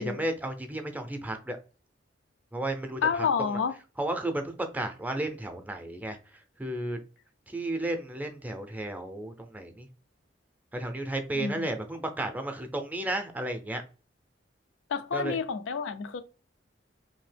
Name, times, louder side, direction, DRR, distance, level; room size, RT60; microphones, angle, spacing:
voice 1, 0.0-1.6 2.5-3.3 4.0-6.2 6.6-7.0 7.5-9.9 10.7-13.8 15.1-15.4, right 1 dB, 10° right, 0.5 m, -33 dB
voice 2, 3.0-3.7 11.3-11.7 14.9-16.2, left 6 dB, 85° left, 0.4 m, -29 dB
2.8 x 2.7 x 3.3 m
head